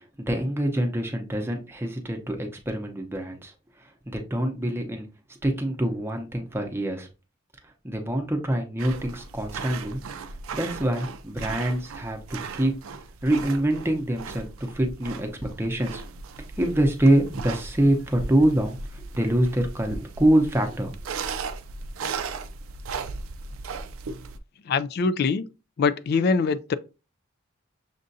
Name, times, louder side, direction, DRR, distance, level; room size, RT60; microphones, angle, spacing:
voice 1, 0.0-3.5 4.1-7.1 7.8-10.0 10.5-12.2 12.5-12.7 13.2-15.3 15.6-16.0 16.6-20.9, right 1 dB, 10° right, 0.7 m, -25 dB
sound 1, 8.8-24.4, right 4 dB, 75° right, 0.4 m, -37 dB
voice 2, 24.7-25.5 25.8-26.7, left 4 dB, 50° left, 0.3 m, -23 dB
6.5 x 2.5 x 2.6 m
head